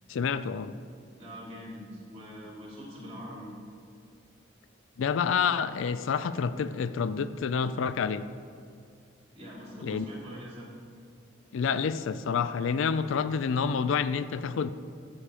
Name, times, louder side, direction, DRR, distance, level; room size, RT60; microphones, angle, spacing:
voice 1, 0.1-0.8 5.0-8.3 9.8-10.1 11.5-14.7, left 6 dB, 75° left, 14 dB, 0.4 m, -28 dB
voice 2, 1.2-3.5 9.3-10.7, equal, 30° right, -4 dB, 2.5 m, -43 dB
10.0 x 7.1 x 4.9 m, 2.3 s
head